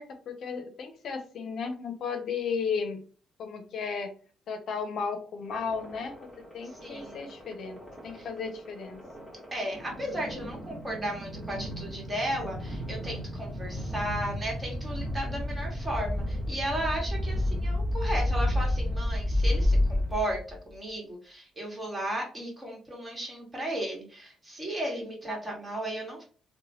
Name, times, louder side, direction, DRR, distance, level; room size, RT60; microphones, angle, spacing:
voice 1, 0.0-3.0 3.4-4.1 4.5-9.0, left 5 dB, 65° left, 6 dB, 0.6 m, -34 dB
sound 1, 5.5-20.6, left 1 dB, ahead, 1.3 m, -31 dB
voice 2, 6.8-7.3 8.1-8.3 9.5-26.2, right 1 dB, 25° right, -1 dB, 1.4 m, -35 dB
3.0 x 2.1 x 2.7 m, 0.40 s
cardioid pair, 90°, 0 cm